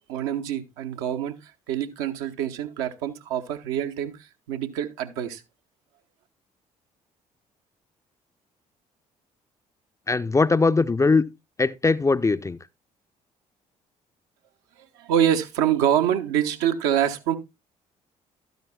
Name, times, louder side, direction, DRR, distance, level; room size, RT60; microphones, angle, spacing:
voice 1, 0.1-1.3 1.7-5.4 14.9-17.4, right 10 dB, 65° right, 0.9 m, -25 dB
voice 2, 10.1-11.2 11.6-12.6, left 3 dB, 15° left, 0.5 m, -20 dB
12.0 x 9.3 x 2.3 m
figure-of-eight pair, 50°, 19 cm